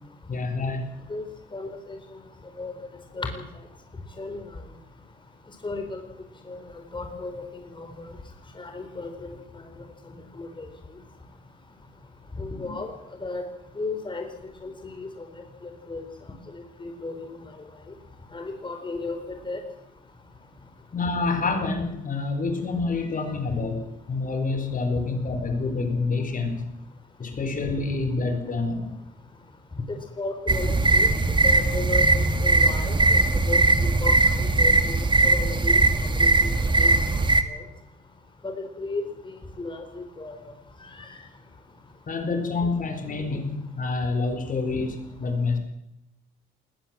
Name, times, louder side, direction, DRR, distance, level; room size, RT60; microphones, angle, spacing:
voice 1, 0.3-0.8 12.6-12.7 20.9-26.7 27.2-28.9 42.1-45.6, left 3 dB, 45° left, 7 dB, 4.6 m, -27 dB
voice 2, 1.5-2.0 2.6-2.7 3.1-3.4 4.2-4.4 5.6-6.0 6.5-8.1 8.5-9.4 10.4-10.7 12.4-12.9 13.2-13.4 13.7-14.3 14.6-16.0 16.5-17.3 18.3-19.6 29.9-31.1 31.4-35.0 35.2-36.5 36.8-37.6 38.4-39.1 39.3-40.3 40.8-41.1, left 3 dB, 25° left, 5 dB, 4.3 m, -34 dB
sound 1, 30.5-37.4, right 2 dB, 25° right, 2.1 m, -20 dB
20.0 x 19.0 x 7.6 m, 0.85 s
cardioid pair, 90°, 20 cm